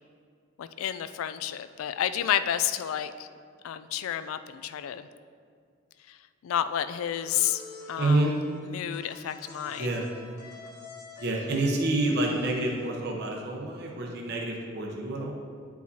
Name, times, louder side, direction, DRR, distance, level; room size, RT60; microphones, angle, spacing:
voice 1, 0.6-3.3 3.6-5.1 6.1-6.2 6.4-7.6 7.9-10.0, left 10 dB, 85° left, 12 dB, 0.3 m, -31 dB
sound 1, 7.1-13.0, left 3 dB, 55° left, 1.3 m, -46 dB
voice 2, 8.0-8.3 9.8-10.1 11.2-15.3, right 2 dB, 55° right, 0 dB, 0.7 m, -28 dB
9.5 x 4.6 x 2.7 m, 2.2 s
head